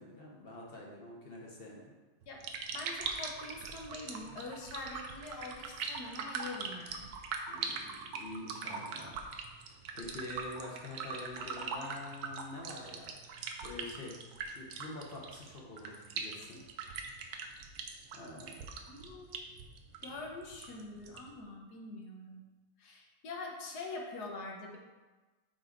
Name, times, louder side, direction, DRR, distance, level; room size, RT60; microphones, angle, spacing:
voice 1, 0.0-1.9 7.5-9.2 9.6-14.2 14.4-16.6 18.1-18.6, left 2 dB, 40° left, -2 dB, 1.1 m, -46 dB
sound 1, 2.2-21.4, right 5 dB, 80° right, 1.2 m, -42 dB
voice 2, 2.7-7.1 8.6-9.1 18.9-19.5 20.0-22.4 22.8-24.8, left 3 dB, 90° left, 0 dB, 1.6 m, -44 dB
6.4 x 4.6 x 3.9 m, 1.2 s
omnidirectional pair, 1.6 m